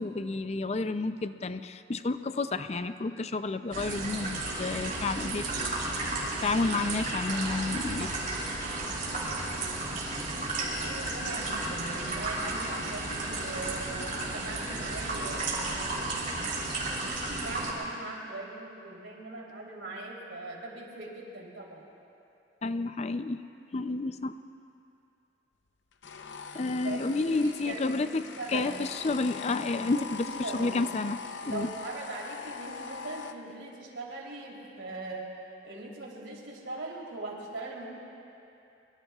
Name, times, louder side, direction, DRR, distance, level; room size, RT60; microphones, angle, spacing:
voice 1, 0.0-5.6 6.1-8.1 22.6-23.4 23.7-24.4 26.5-28.2 28.5-30.3 30.5-31.7, left 3 dB, 35° left, 11 dB, 0.4 m, -30 dB
sound 1, 3.7-17.7, right 2 dB, 45° right, 3.5 m, -33 dB
voice 2, 10.8-14.0 14.3-15.5 17.4-21.8 26.8-28.8 29.9-30.8 31.4-35.3 35.6-37.9, right 2 dB, 90° right, -2 dB, 3.3 m, -40 dB
sound 2, 26.0-33.3, left 6 dB, 75° left, 0.7 m, -41 dB
24.0 x 24.0 x 2.4 m, 2.8 s
head